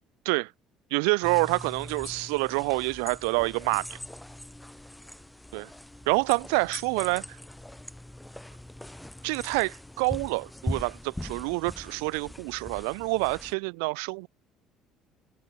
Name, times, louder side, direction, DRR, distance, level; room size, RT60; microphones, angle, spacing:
voice 1, 0.9-4.0 5.5-5.7 6.1-7.3 9.2-14.3, right 37 dB, 85° right, 0.5 m, -27 dB
sound 1, 1.2-13.5, left 1 dB, 5° left, 2.6 m, -41 dB
supercardioid pair, 85°, 0 cm